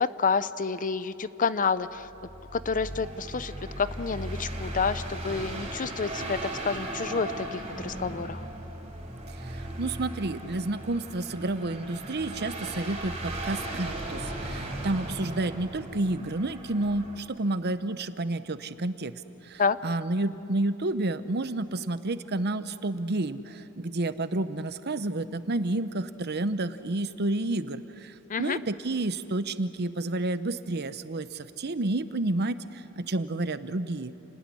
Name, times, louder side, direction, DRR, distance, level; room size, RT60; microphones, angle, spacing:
voice 1, 0.2-2.1 2.5-8.4 19.6-19.8 28.3-28.6, left 5 dB, 40° left, 14 dB, 0.7 m, -29 dB
sound 1, 2.0-17.2, right 1 dB, 30° right, 5.5 m, -37 dB
voice 2, 9.8-19.1 19.5-28.1 28.4-34.1, right 2 dB, 50° right, 12 dB, 0.9 m, -30 dB
29.5 x 19.0 x 9.9 m, 2.9 s
head